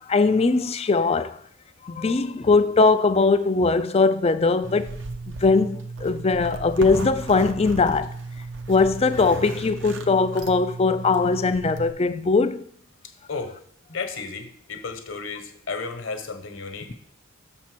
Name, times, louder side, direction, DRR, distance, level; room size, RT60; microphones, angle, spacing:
voice 1, 0.1-1.4 1.8-5.0 5.4-8.1 8.7-12.6, left 4 dB, 30° left, 0.4 m, -20 dB
Zipper (clothing), 4.6-11.9, right 3 dB, 55° right, 0.7 m, -35 dB
voice 2, 13.9-16.9, left 4 dB, 60° left, 1.0 m, -33 dB
6.6 x 4.3 x 6.1 m
head